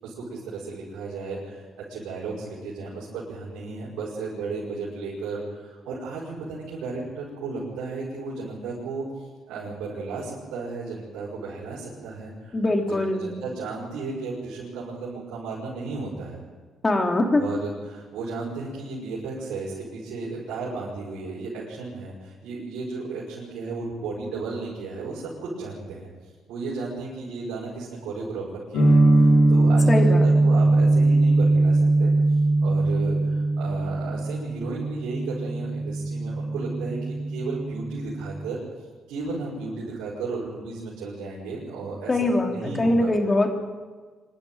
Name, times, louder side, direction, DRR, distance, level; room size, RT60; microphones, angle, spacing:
voice 1, 0.0-12.8 13.2-16.4 17.4-26.1 26.5-38.6 39.1-42.2 42.4-43.1, right 3 dB, 85° right, -7 dB, 5.6 m, -34 dB
voice 2, 12.5-13.3 16.8-17.4 29.9-30.2 42.1-43.5, left 2 dB, 25° left, 3 dB, 3.3 m, -22 dB
sound 1, 28.7-38.5, right 2 dB, 75° left, 4.5 m, -21 dB
25.0 x 12.0 x 9.1 m, 1.4 s
cardioid pair, 80°, 0 cm